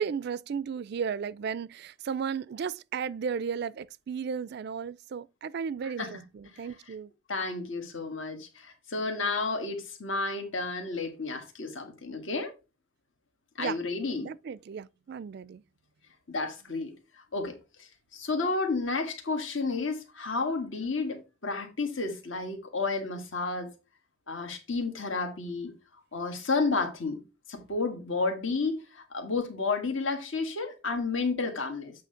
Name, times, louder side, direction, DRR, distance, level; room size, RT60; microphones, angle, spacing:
voice 1, 0.0-7.1 13.6-13.8 14.2-15.6, right 6 dB, 50° right, 0.3 m, -34 dB
voice 2, 5.8-6.2 7.3-12.5 13.6-14.3 16.3-23.7 24.3-25.7 26.1-27.2 27.5-31.9, left 3 dB, 65° left, 1.6 m, -31 dB
8.4 x 3.1 x 5.6 m
head